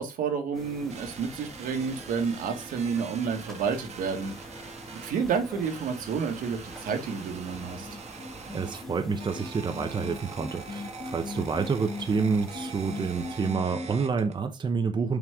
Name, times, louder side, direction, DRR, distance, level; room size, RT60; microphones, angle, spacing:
voice 1, 0.0-4.3 4.9-7.9, right 6 dB, 80° right, 1.8 m, -30 dB
sound 1, 0.5-13.6, right 1 dB, ahead, 1.8 m, -45 dB
sound 2, 0.9-5.2 5.6-8.8 9.2-14.4, right 5 dB, 55° right, 1.4 m, -44 dB
sound 3, 7.8-13.9, left 3 dB, 40° left, 1.1 m, -38 dB
voice 2, 8.5-15.2, right 5 dB, 35° right, 0.9 m, -28 dB
6.1 x 5.2 x 3.7 m
cardioid pair, 110°, 14 cm